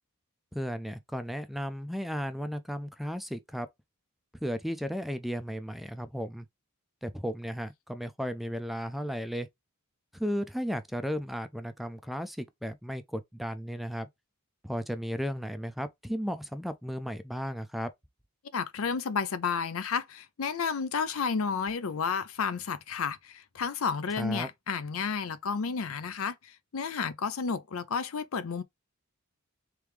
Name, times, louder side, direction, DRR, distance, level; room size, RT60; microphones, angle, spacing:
voice 1, 0.5-3.7 4.4-6.5 7.0-9.5 10.1-14.1 14.6-17.9 24.2-24.5, equal, ahead, 0.4 m, -34 dB
voice 2, 18.5-28.6, left 5 dB, 70° left, 0.5 m, -31 dB
3.4 x 3.4 x 3.1 m
head